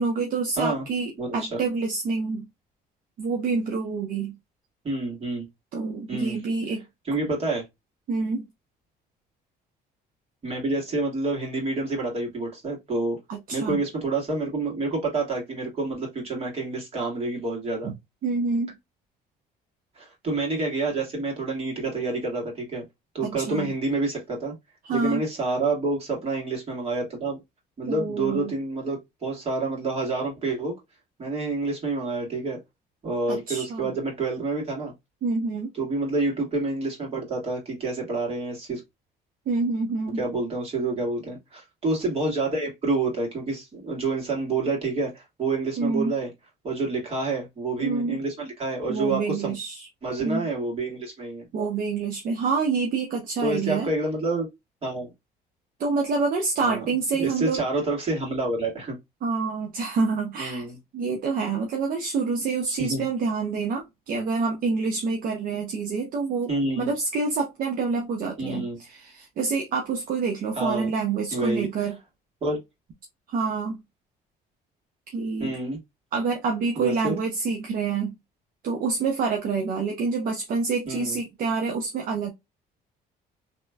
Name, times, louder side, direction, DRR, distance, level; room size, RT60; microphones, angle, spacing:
voice 1, 0.0-2.5 3.2-4.3 5.7-6.8 8.1-8.5 13.3-13.8 17.8-17.9 18.2-18.8 23.2-23.7 24.8-25.2 27.9-28.5 33.3-33.9 35.2-35.7 39.5-40.2 45.8-46.1 47.8-48.2 48.9-49.9 50.2-50.4 51.5-53.9 55.8-57.6 59.2-60.7 60.9-68.6 68.9-72.0 73.3-73.8 75.1-75.6 76.1-78.2 78.6-82.3, right 4 dB, 55° right, 0.7 m, -27 dB
voice 2, 0.6-0.9 1.2-1.6 4.8-5.5 6.1-6.4 7.1-7.6 10.4-13.2 13.5-17.9 20.0-22.8 23.1-24.5 24.9-27.4 27.8-30.7 31.2-32.6 33.0-34.9 35.8-38.8 40.2-46.3 46.6-49.6 50.0-51.5 53.4-54.5 54.8-55.1 56.6-56.8 57.2-59.0 60.4-60.8 62.8-63.0 66.5-66.9 68.4-68.8 70.6-70.9 71.3-71.7 72.4-72.6 75.4-75.8 76.8-77.2 80.9-81.2, right 3 dB, 35° right, 2.0 m, -28 dB
3.0 x 3.0 x 2.3 m
cardioid pair, 110°, 17 cm